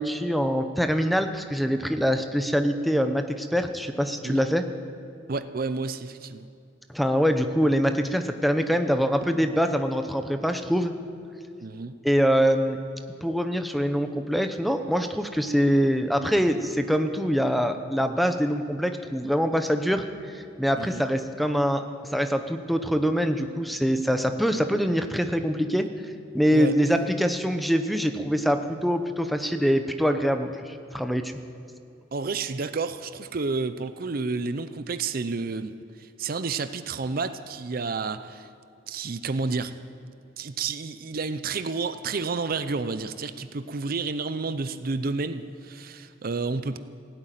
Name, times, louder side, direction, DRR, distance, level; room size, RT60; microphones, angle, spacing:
voice 1, 0.0-4.7 6.9-10.9 12.0-12.8 13.2-20.0 20.3-21.8 22.1-25.9 26.3-31.3, equal, ahead, 7 dB, 0.7 m, -24 dB
voice 2, 5.3-6.5 11.6-11.9 20.8-21.0 26.5-26.8 32.1-35.7 36.0-38.5 38.9-39.7 40.4-46.8, right 4 dB, 50° right, 12 dB, 0.6 m, -30 dB
16.5 x 9.0 x 9.1 m, 2.6 s
head